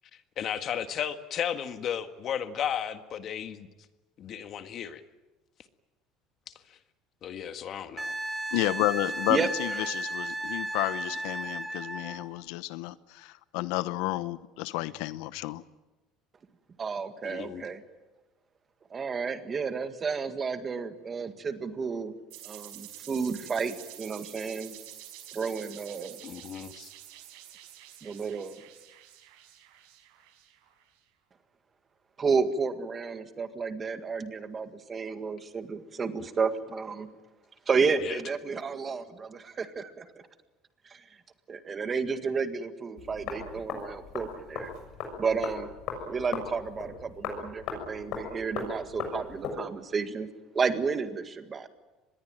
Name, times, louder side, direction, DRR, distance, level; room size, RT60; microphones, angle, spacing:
voice 1, 0.4-3.7 4.2-5.0 6.5-6.8 7.2-8.2 17.2-17.6 26.2-26.9 36.2-36.3 38.0-38.2, left 9 dB, 40° left, 1.6 m, -34 dB
Wind instrument woodwind instrument, 8.0-12.2 14.9-15.0, right 1 dB, 10° right, 2.5 m, -34 dB
voice 2, 8.5-15.6, left 17 dB, 80° left, 0.8 m, -31 dB
voice 3, 9.3-9.8 16.8-17.8 18.9-22.1 22.4-24.8 25.3-26.2 28.0-28.6 32.2-37.1 37.7-40.1 40.9-41.0 41.5-44.7 45.2-45.7 46.0-50.3 50.5-51.7, right 5 dB, 25° right, 1.8 m, -31 dB
sound 1, 22.3-30.8, right 12 dB, 85° right, 5.3 m, -48 dB
sound 2, 43.0-49.6, left 5 dB, 60° left, 6.7 m, -38 dB
25.0 x 21.0 x 9.0 m
cardioid pair, 145°, 0 cm